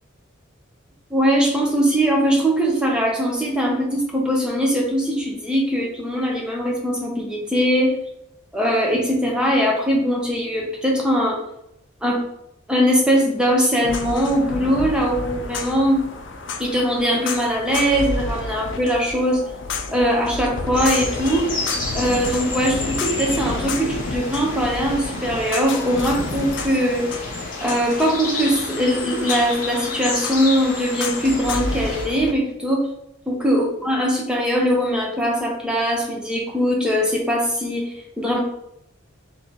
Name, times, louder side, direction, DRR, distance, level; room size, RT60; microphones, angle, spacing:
voice 1, 1.1-8.0 8.5-11.4 12.0-12.2 12.7-16.0 16.6-19.4 19.9-21.5 21.9-27.1 27.6-32.9 33.3-38.4, equal, 5° right, -2 dB, 0.7 m, -21 dB
sound 1, 13.8-32.3, left 3 dB, 60° left, 0.4 m, -30 dB
sound 2, 20.7-32.1, left 3 dB, 40° left, 1.0 m, -31 dB
3.3 x 3.1 x 4.0 m, 0.81 s
head